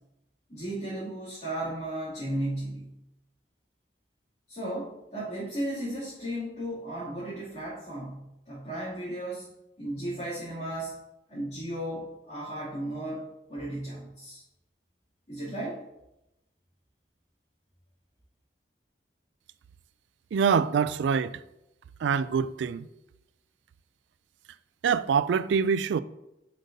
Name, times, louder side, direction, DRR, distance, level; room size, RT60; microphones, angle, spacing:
voice 1, 0.5-2.9 4.5-9.5 9.8-11.0 11.3-14.4 15.3-15.8, right 1 dB, 40° left, 2.6 m, -35 dB
voice 2, 20.3-21.4 22.0-22.9 24.8-26.0, right 6 dB, 80° right, 0.3 m, -25 dB
10.0 x 5.2 x 2.7 m
head